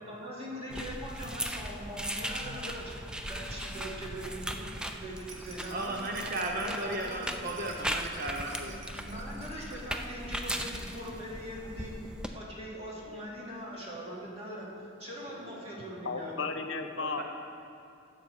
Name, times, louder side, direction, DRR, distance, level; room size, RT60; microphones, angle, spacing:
voice 1, 0.0-2.9 3.3-6.0 6.3-7.5 8.7-12.0 12.3-16.6, equal, 35° right, -4 dB, 2.5 m, -42 dB
sound 1, 0.7-12.3, equal, 5° right, 0.4 m, -38 dB
Rattle, 5.1-10.8 11.1-11.2 11.5-11.6, right 4 dB, 75° right, 1.2 m, -51 dB
voice 2, 5.7-8.8 15.3-15.5 17.0-17.2, right 1 dB, 50° right, 1 dB, 0.8 m, -35 dB
voice 3, 16.0-17.2, left 4 dB, 70° left, 7 dB, 0.8 m, -35 dB
15.5 x 6.7 x 4.7 m, 2.5 s
head